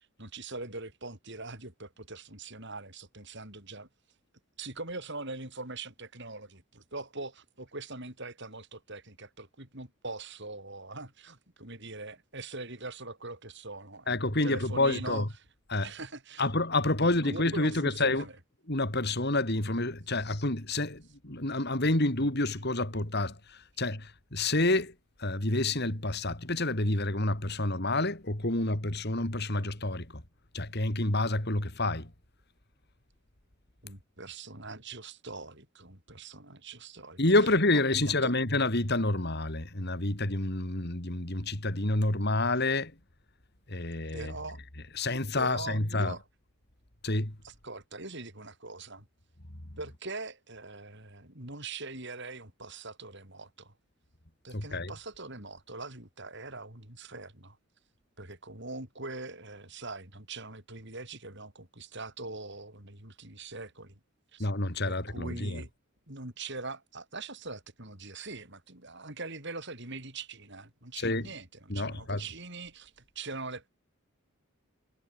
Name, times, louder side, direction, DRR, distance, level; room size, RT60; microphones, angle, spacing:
voice 1, 0.2-3.9 4.6-15.2 15.8-16.5 17.0-18.4 33.8-37.2 37.7-38.3 44.1-44.6 45.4-46.2 47.4-49.1 49.8-53.7 54.4-57.6 58.2-64.0 64.3-64.5 64.9-65.7 66.1-73.7, right 3 dB, 50° right, 7.2 m, -42 dB
voice 2, 14.1-15.3 15.7-15.9 16.4-18.2 18.7-24.9 25.2-30.2 30.5-32.1 37.2-42.9 43.7-44.3 45.0-46.1 47.0-47.3 54.5-54.9 64.4-65.6 71.0-71.3 71.7-72.2, left 2 dB, 50° left, 3.2 m, -28 dB
head